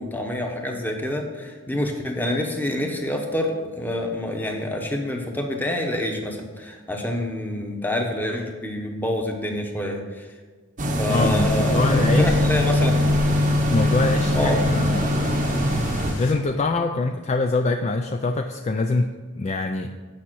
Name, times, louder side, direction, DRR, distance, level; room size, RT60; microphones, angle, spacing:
voice 1, 0.0-10.3 11.0-12.9 14.3-14.6, left 1 dB, 10° left, 2 dB, 1.0 m, -27 dB
sound 1, 10.8-16.1, left 1 dB, 35° right, 0.8 m, -21 dB
voice 2, 11.0-12.4 13.7-15.4 16.2-19.1 19.4-19.9, left 3 dB, 30° left, 5 dB, 0.3 m, -24 dB
sound 2, 11.1-16.3, left 1 dB, 55° left, 2.2 m, -37 dB
8.7 x 5.6 x 6.1 m, 1.4 s
head